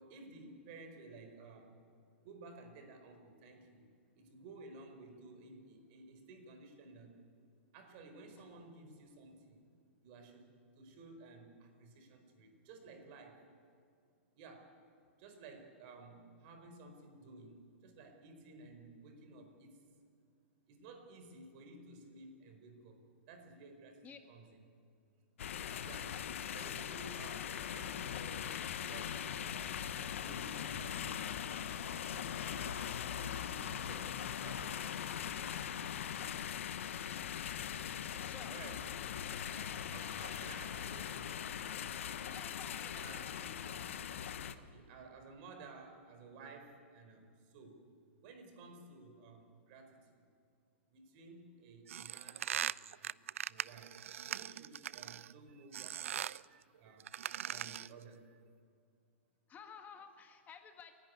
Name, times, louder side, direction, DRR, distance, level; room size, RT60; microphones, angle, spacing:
voice 1, 0.0-1.7 2.2-3.8 4.1-7.2 7.7-9.6 10.0-13.4 14.3-14.7 15.2-19.8 20.7-24.7 25.8-26.2 26.5-29.8 30.1-31.5 31.9-36.0 38.5-38.9 39.5-41.4 43.0-43.3 43.6-44.0 44.6-47.8 48.2-50.3 50.9-53.9 54.3-56.2 56.7-57.1 57.5-58.2, right 3 dB, 50° right, 5 dB, 4.8 m, -55 dB
sound 1, 25.4-44.5, left 9 dB, 75° left, 1.2 m, -41 dB
voice 2, 38.2-38.5 42.3-43.6 59.5-60.9, left 7 dB, 25° left, 6 dB, 1.6 m, -53 dB
sound 2, 51.9-55.3 55.7-56.4 57.0-58.0, right 10 dB, 80° right, 0.4 m, -40 dB
29.5 x 11.5 x 9.6 m, 2.3 s
hypercardioid pair, 130°, 7 cm